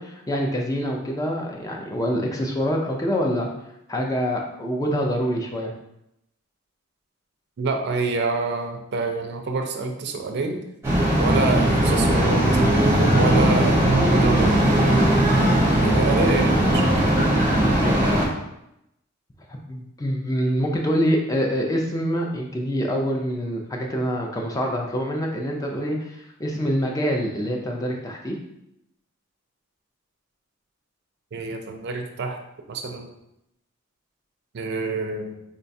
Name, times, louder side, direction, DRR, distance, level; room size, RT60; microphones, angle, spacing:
voice 1, 0.0-3.5 3.9-5.7 17.0-17.1 17.6-18.0 19.7-28.4, equal, 15° left, 0 dB, 0.4 m, -25 dB
voice 2, 7.6-10.6 11.2-12.4 13.1-14.8 15.8-17.0 31.3-32.4 32.7-33.1 34.5-35.4, right 3 dB, 50° right, 3 dB, 0.4 m, -27 dB
sound 1, 10.8-18.3, right 1 dB, 10° right, 0.7 m, -19 dB
3.8 x 2.2 x 2.6 m, 0.84 s
head